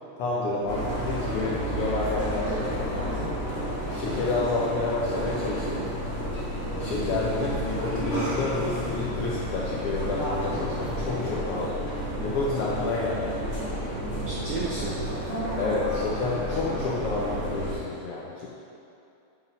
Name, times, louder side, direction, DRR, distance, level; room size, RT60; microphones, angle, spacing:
voice 1, 0.2-3.3 3.9-5.9 6.8-11.8 12.2-13.4 15.6-18.5, left 3 dB, 75° left, -5 dB, 1.3 m, -29 dB
sound 1, 0.7-17.7, right 1 dB, 30° left, 1.6 m, -31 dB
voice 2, 6.8-7.2 14.2-15.0, right 3 dB, 80° right, -3 dB, 1.3 m, -33 dB
7.8 x 5.7 x 5.6 m, 2.7 s
omnidirectional pair, 3.5 m